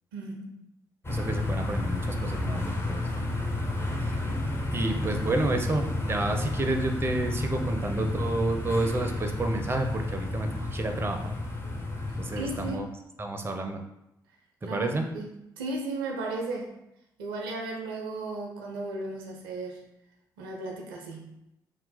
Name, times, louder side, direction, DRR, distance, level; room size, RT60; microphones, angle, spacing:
voice 1, 0.1-0.6 3.1-3.2 12.3-13.0 14.6-16.8 17.2-19.9 20.4-21.4, right 2 dB, 80° right, 1 dB, 0.4 m, -35 dB
sound 1, 1.0-12.8, left 2 dB, 20° left, 0.7 m, -31 dB
voice 2, 1.1-3.1 4.0-4.1 4.7-11.3 12.2-12.9 13.2-13.8 14.6-15.1, right 2 dB, 20° right, 5 dB, 0.5 m, -30 dB
2.8 x 2.0 x 3.9 m, 0.85 s
figure-of-eight pair, 40°, 11 cm